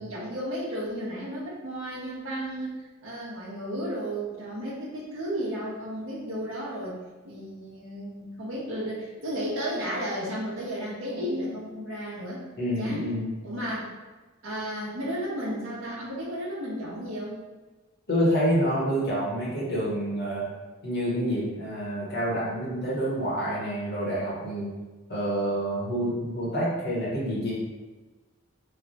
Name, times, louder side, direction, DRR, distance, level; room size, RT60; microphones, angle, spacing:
voice 1, 0.0-2.7 3.0-7.0 7.2-12.4 12.8-13.1 13.4-13.9 14.4-17.4, equal, 65° right, -6 dB, 0.9 m, -33 dB
voice 2, 12.6-13.4 18.1-20.4 20.8-24.7 25.1-27.5, equal, 45° left, -6 dB, 1.0 m, -27 dB
3.3 x 2.2 x 4.0 m, 1.2 s
head